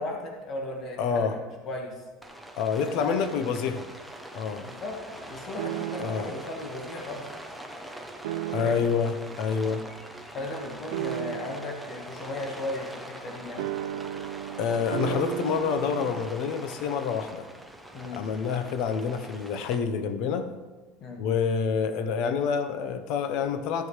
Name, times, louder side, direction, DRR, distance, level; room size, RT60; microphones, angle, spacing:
voice 1, 0.0-1.4 1.6-2.0 3.0-3.6 4.6-5.0 5.3-7.3 8.5-8.9 10.3-13.7 15.1-15.2 17.9-18.2 21.0-21.2, left 2 dB, 30° left, 1 dB, 1.5 m, -36 dB
voice 2, 1.0-1.4 2.6-3.8 4.3-4.7 6.0-6.3 8.5-9.8 14.6-17.5 18.1-20.5 21.2-23.9, left 6 dB, 50° left, 10 dB, 0.8 m, -27 dB
Rain, 2.2-19.8, right 1 dB, ahead, 0.6 m, -43 dB
sound 1, 5.6-6.4 8.2-9.1 10.9-11.8 13.6-16.3, right 14 dB, 80° right, 0.3 m, -34 dB
14.0 x 7.8 x 3.2 m, 1.3 s
cardioid pair, 175°, 0 cm